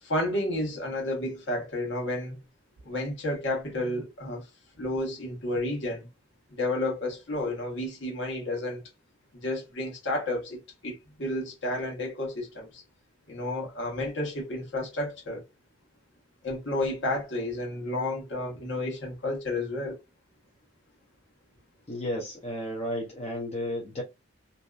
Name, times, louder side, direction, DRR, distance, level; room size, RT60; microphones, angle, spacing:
voice 1, 0.0-2.4 2.8-4.5 4.8-6.1 6.5-8.8 9.3-12.8 13.3-15.4 16.4-20.0, left 1 dB, 60° left, 1.0 m, -31 dB
voice 2, 21.9-24.0, left 1 dB, 30° left, 0.5 m, -33 dB
2.6 x 2.3 x 2.3 m
head